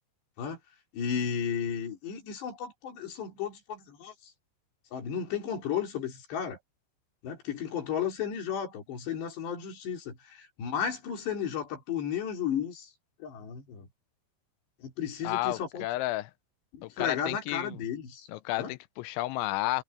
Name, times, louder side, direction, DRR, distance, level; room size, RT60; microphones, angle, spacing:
voice 1, 0.9-4.3 4.9-6.6 7.2-12.9 13.2-13.9 14.8-15.8 16.7-18.3 18.6-18.7, left 8 dB, 60° left, 5.9 m, -34 dB
voice 2, 15.2-16.3 16.8-17.8 18.3-19.8, left 18 dB, 80° left, 2.9 m, -32 dB
omnidirectional pair, 5.7 m